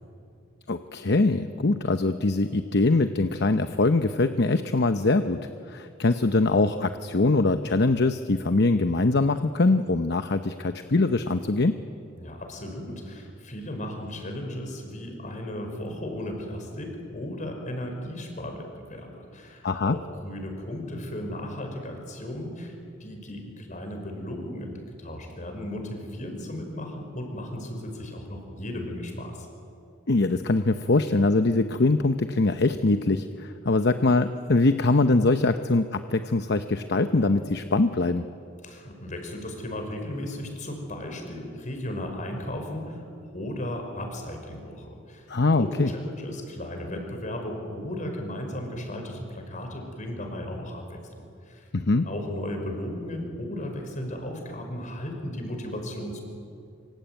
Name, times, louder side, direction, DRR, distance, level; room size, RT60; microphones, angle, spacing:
voice 1, 0.7-5.4 5.7-11.8 19.6-20.0 30.1-38.2 45.3-45.9 51.7-52.1, left 2 dB, 60° left, 9 dB, 0.9 m, -23 dB
voice 2, 12.2-22.7 23.0-29.5 38.6-45.3 45.6-51.0 51.4-51.7 52.0-56.2, left 1 dB, 40° left, 4 dB, 5.4 m, -35 dB
25.5 x 25.0 x 9.3 m, 2.5 s
head